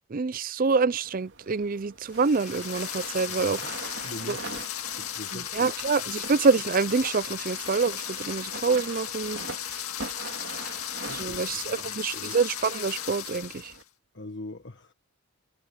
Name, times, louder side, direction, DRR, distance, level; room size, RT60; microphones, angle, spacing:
voice 1, 0.1-3.6 4.3-4.4 5.6-9.4 11.2-13.5, right 4 dB, 40° right, 0.5 m, -26 dB
sound 1, 1.0-13.8, right 3 dB, 55° right, 3.0 m, -43 dB
sound 2, 2.1-13.8, left 11 dB, 80° left, 2.0 m, -36 dB
voice 2, 3.4-4.7 4.9-5.7 11.1-12.4 14.1-14.9, left 2 dB, 55° left, 1.5 m, -43 dB
head